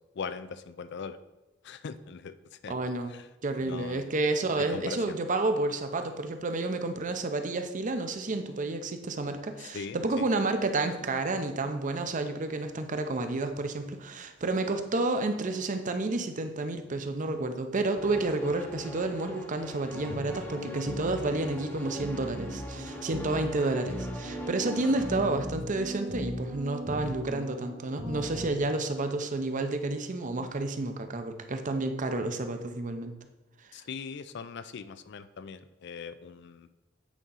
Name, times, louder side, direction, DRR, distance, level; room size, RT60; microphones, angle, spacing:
voice 1, 0.1-1.2 1.6-2.7 3.1-3.3 3.6-4.1 4.5-5.0 9.6-10.3 23.3-23.5 33.7-36.7, left 5 dB, 60° left, 13 dB, 0.4 m, -41 dB
voice 2, 2.7-3.1 3.4-33.1, right 2 dB, 40° right, 7 dB, 0.6 m, -30 dB
sound 1, 17.9-25.2, left 1 dB, 10° left, 0.7 m, -43 dB
sound 2, 19.9-28.5, equal, 85° right, 1.8 m, -39 dB
8.3 x 3.7 x 5.5 m, 1.0 s
head